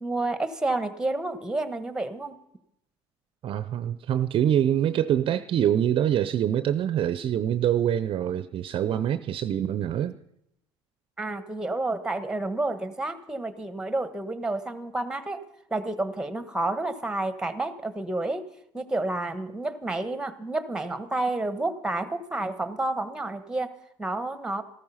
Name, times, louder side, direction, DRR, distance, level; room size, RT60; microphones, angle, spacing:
voice 1, 0.0-2.4 11.2-15.4 15.7-18.4 18.7-24.6, right 2 dB, 5° right, 12 dB, 1.4 m, -30 dB
voice 2, 3.4-10.2, right 10 dB, 50° right, 13 dB, 0.7 m, -25 dB
14.5 x 13.5 x 5.7 m, 0.77 s
supercardioid pair, 85°, 11 cm